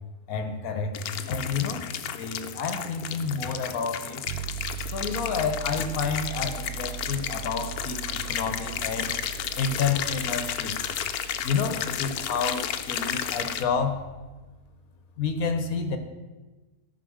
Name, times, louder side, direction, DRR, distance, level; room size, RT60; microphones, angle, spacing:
voice 1, 0.3-1.0 1.3-4.3 4.9-9.1 9.6-10.8 11.4-14.0 15.2-16.0, left 5 dB, 70° left, 8 dB, 1.4 m, -29 dB
sound 1, 0.9-13.6, left 9 dB, 90° left, 1.1 m, -33 dB
sound 2, 4.3-14.4, right 10 dB, 65° right, 1.2 m, -40 dB
13.5 x 4.6 x 6.4 m, 1.2 s
omnidirectional pair, 1.6 m